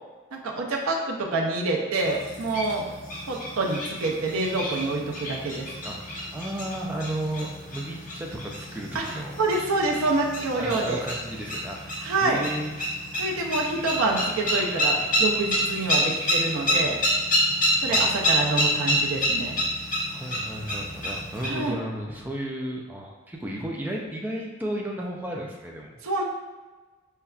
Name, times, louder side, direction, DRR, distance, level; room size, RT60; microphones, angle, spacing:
voice 1, 0.3-2.8 3.3-5.7 8.9-9.0 9.4-11.0 12.0-12.4 13.2-17.0 17.8-19.5 21.4-21.7 26.0-26.2, right 3 dB, 85° right, -1 dB, 0.5 m, -27 dB
sound 1, 2.0-21.5, equal, 40° left, 0.8 m, -28 dB
voice 2, 5.8-9.4 10.6-12.7 13.1-13.6 17.9-18.0 20.1-25.9, right 1 dB, 10° right, -1 dB, 0.3 m, -34 dB
5.4 x 2.2 x 2.4 m, 1.3 s
head